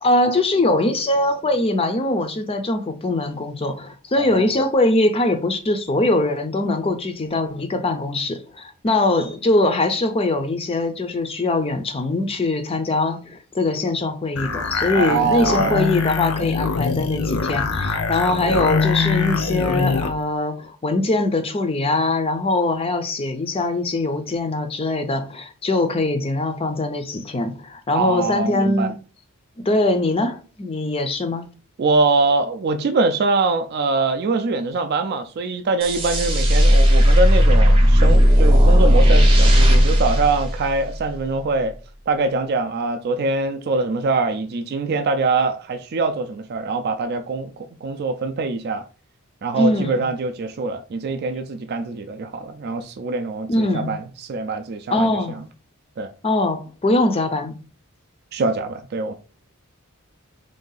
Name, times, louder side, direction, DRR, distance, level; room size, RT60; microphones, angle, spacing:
voice 1, 0.0-28.9 29.6-31.5 49.5-50.0 53.5-54.0 54.9-55.4 56.2-57.6, left 2 dB, 25° left, 0.4 m, -22 dB
voice 2, 4.2-4.5 14.9-15.9 27.9-28.9 31.8-41.7 42.1-48.8 49.4-55.4 56.0-56.1 58.3-59.1, right 3 dB, 45° right, 0.4 m, -23 dB
sound 1, 14.4-20.1, left 4 dB, 70° left, 0.6 m, -23 dB
sound 2, 35.8-41.1, equal, 25° right, 0.8 m, -14 dB
3.6 x 2.7 x 3.9 m
head